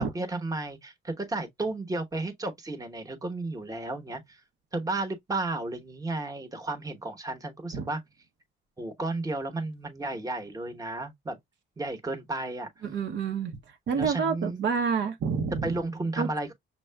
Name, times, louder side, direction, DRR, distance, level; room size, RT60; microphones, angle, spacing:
voice 1, 0.0-4.4 4.7-8.0 8.8-11.4 11.8-12.7 13.9-14.6 15.5-16.5, right 2 dB, 15° right, 0.9 m, -33 dB
voice 2, 12.8-13.6 13.9-15.8 16.2-16.3, right 6 dB, 65° right, 0.8 m, -28 dB
6.5 x 2.3 x 2.2 m
cardioid pair, 90°, 20 cm